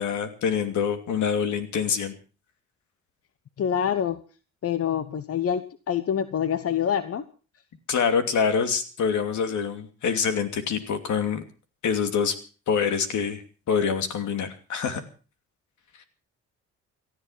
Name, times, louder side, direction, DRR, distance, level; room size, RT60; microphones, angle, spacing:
voice 1, 0.0-2.1 7.9-11.4 11.8-12.4 12.7-13.4 13.7-15.0, left 6 dB, 75° left, 8 dB, 2.8 m, -25 dB
voice 2, 3.6-4.2 4.6-7.2, left 8 dB, 50° left, 13 dB, 1.1 m, -26 dB
18.5 x 13.5 x 5.8 m, 0.38 s
cardioid pair, 90°, 30 cm